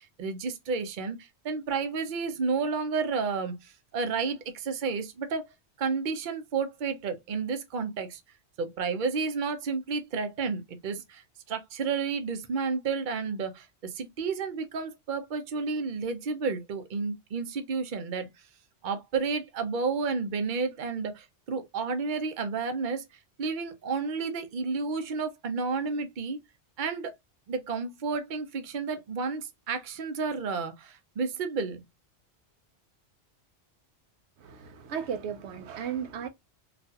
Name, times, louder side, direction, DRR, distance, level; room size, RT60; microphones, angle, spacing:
voice 1, 0.0-5.5 5.8-8.2 8.6-11.2 11.5-18.3 18.8-23.0 23.4-26.4 26.8-27.1 27.5-31.8, right 4 dB, 50° right, 0.8 m, -31 dB
voice 2, 34.4-36.3, right 7 dB, 80° right, 0.9 m, -35 dB
4.0 x 2.4 x 2.7 m
omnidirectional pair, 1.2 m